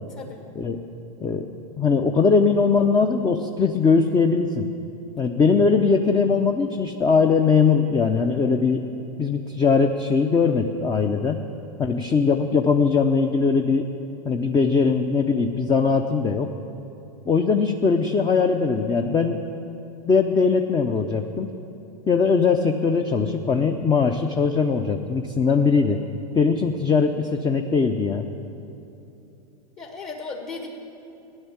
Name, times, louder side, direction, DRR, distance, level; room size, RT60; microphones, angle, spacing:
voice 1, 1.8-4.6 5.2-8.8 9.2-11.4 11.8-13.9 14.2-16.5 17.3-19.4 20.0-21.5 22.1-26.0 26.3-28.3, left 5 dB, 20° left, 5 dB, 0.8 m, -20 dB
voice 2, 29.8-30.7, left 4 dB, 35° left, 1 dB, 1.8 m, -35 dB
15.5 x 10.5 x 7.4 m, 2.8 s
hypercardioid pair, 110°, 20 cm